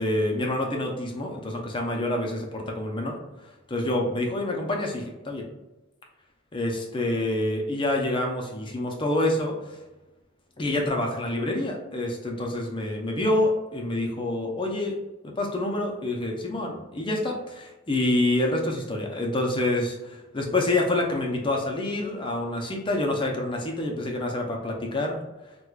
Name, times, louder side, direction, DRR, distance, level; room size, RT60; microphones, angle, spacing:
voice 1, 0.0-3.2 3.7-5.5 6.5-9.6 10.6-15.0 15.2-25.2, left 1 dB, 25° left, 0 dB, 0.5 m, -27 dB
4.6 x 2.2 x 2.3 m, 1.0 s
head